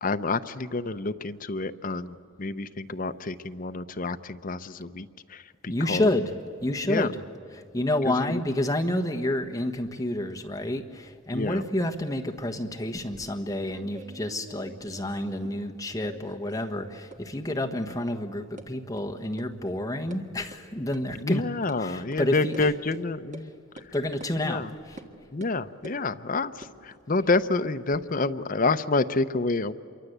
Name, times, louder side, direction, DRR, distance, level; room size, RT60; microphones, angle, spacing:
voice 1, 0.0-6.2 6.8-7.1 8.0-8.4 11.3-11.6 17.7-17.9 21.1-23.9 24.4-24.7 25.3-29.7, left 3 dB, 40° left, 10 dB, 0.7 m, -29 dB
voice 2, 5.7-6.3 6.6-7.2 7.7-21.4 21.8-22.7 23.9-24.6 24.9-25.0, left 1 dB, 15° left, 2 dB, 1.3 m, -29 dB
sound 1, 12.9-15.8 16.0-16.8 17.1-17.2 17.5-17.6 17.9-18.0 18.6-18.7 19.0-19.1 19.4-19.5 19.8-20.2 20.5-20.6 20.9-21.0 21.7-21.8 22.1-22.2 22.5-22.7 23.3-23.5 23.8-23.9 24.2-24.3 25.0-25.1 25.4-26.0 26.5-28.1, right 1 dB, 35° right, 1.6 m, -47 dB
27.0 x 23.5 x 8.0 m, 2.6 s
head